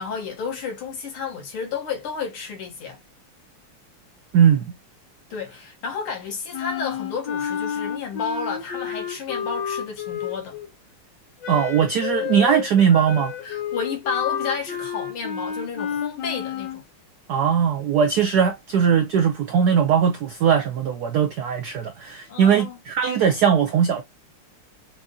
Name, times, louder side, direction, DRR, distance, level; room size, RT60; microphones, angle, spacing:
voice 1, 0.0-3.0 5.3-10.6 13.4-16.8 22.3-22.8, left 5 dB, 75° left, 2.3 m, -31 dB
voice 2, 4.3-4.6 11.5-13.3 17.3-24.0, right 7 dB, 85° right, 0.8 m, -19 dB
Wind instrument woodwind instrument, 6.5-10.7 11.4-16.8, left 8 dB, 60° left, 1.4 m, -30 dB
6.0 x 2.6 x 2.6 m
omnidirectional pair, 2.4 m